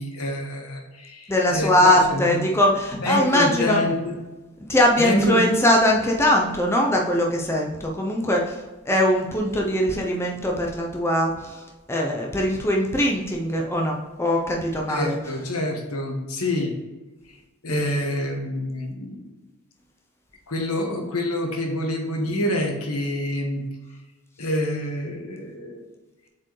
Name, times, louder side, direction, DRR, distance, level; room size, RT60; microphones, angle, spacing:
voice 1, 0.0-2.5 3.0-4.2 5.0-5.4 14.9-16.7 17.6-19.3 20.5-23.6 24.4-25.8, left 1 dB, 75° left, 2 dB, 1.4 m, -27 dB
voice 2, 1.3-3.8 4.7-8.6 8.9-11.6 11.9-15.2, left 1 dB, 10° left, -1 dB, 0.6 m, -21 dB
7.4 x 4.5 x 3.2 m, 1.2 s
head